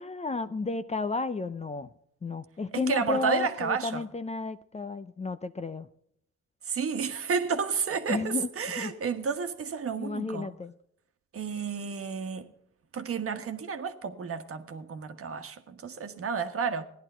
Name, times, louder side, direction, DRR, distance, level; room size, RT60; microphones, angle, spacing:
voice 1, 0.0-1.9 2.2-5.9 8.1-8.5 8.8-8.9 10.0-10.7, left 3 dB, 20° left, 0.6 m, -32 dB
voice 2, 2.7-4.0 6.7-10.5 11.3-12.5 12.9-16.8, right 6 dB, 50° right, 1.4 m, -31 dB
15.5 x 11.0 x 4.5 m
cardioid pair, 90°, 30 cm